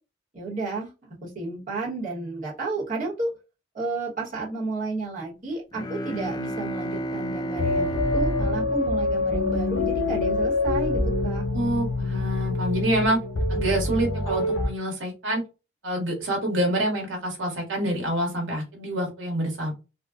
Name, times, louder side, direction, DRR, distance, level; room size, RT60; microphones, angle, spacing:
voice 1, 0.3-0.9 1.2-3.3 3.7-11.4, right 3 dB, 40° right, -5 dB, 1.1 m, -32 dB
Bowed string instrument, 5.7-10.0, right 1 dB, 20° left, 0.3 m, -33 dB
sound 1, 7.6-14.7, left 2 dB, 85° left, 0.7 m, -25 dB
voice 2, 11.5-13.2 13.5-15.4 15.8-19.7, right 1 dB, 80° right, 1 dB, 1.2 m, -26 dB
3.6 x 2.2 x 2.3 m, 0.29 s
head